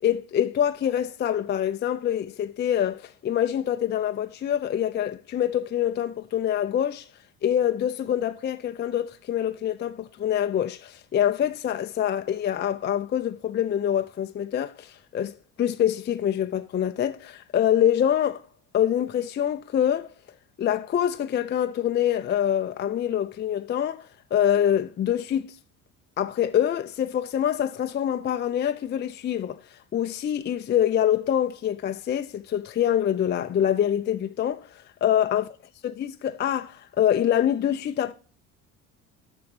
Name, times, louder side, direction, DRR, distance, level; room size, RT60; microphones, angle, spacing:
voice 1, 0.0-7.1 7.4-18.4 18.7-20.1 20.6-25.5 26.2-29.6 29.9-35.5 35.8-38.1, left 10 dB, 25° left, 0.5 m, -25 dB
7.1 x 6.1 x 4.9 m
hypercardioid pair, 55°, 42 cm